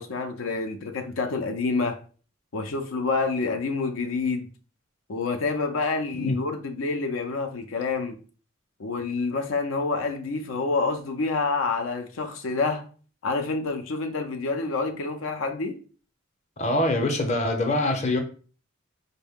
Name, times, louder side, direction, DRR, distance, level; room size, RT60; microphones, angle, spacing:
voice 1, 0.0-2.0 2.5-4.5 5.1-8.2 8.8-12.8 13.2-15.8, left 3 dB, 80° left, 0.5 m, -28 dB
voice 2, 16.6-18.2, left 1 dB, 35° left, 0.6 m, -24 dB
4.5 x 2.1 x 3.5 m
head